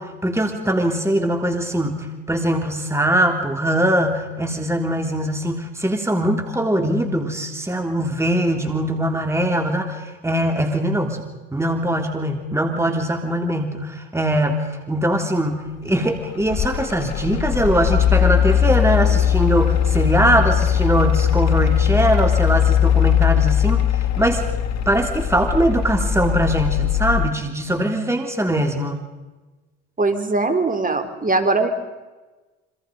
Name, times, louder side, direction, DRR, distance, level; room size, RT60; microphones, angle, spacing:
voice 1, 0.0-23.8 24.2-24.4 24.9-29.0, right 1 dB, 10° right, 4 dB, 3.4 m, -21 dB
Mechanical fan, 16.0-27.3, left 9 dB, 50° left, 1.7 m, -19 dB
voice 2, 30.0-31.7, right 3 dB, 25° right, 7 dB, 3.6 m, -20 dB
28.0 x 26.0 x 5.3 m, 1.2 s
hypercardioid pair, 70°, 33 cm